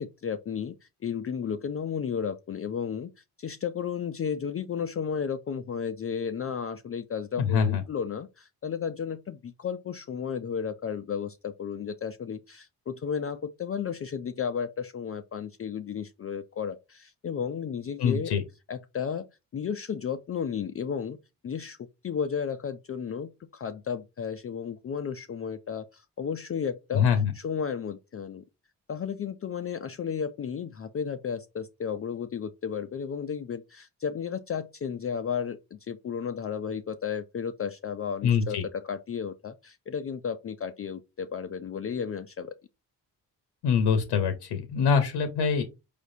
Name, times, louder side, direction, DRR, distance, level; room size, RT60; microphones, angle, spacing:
voice 1, 0.0-18.3 18.7-19.3 19.5-21.2 21.4-21.8 22.0-27.1 27.4-28.4 28.9-42.6, left 7 dB, 30° left, 0.5 m, -33 dB
voice 2, 7.4-7.8 18.0-18.4 26.9-27.3 38.2-38.6 43.6-45.6, left 6 dB, 70° left, 0.8 m, -24 dB
4.7 x 3.4 x 2.7 m
hypercardioid pair, 40°, 44 cm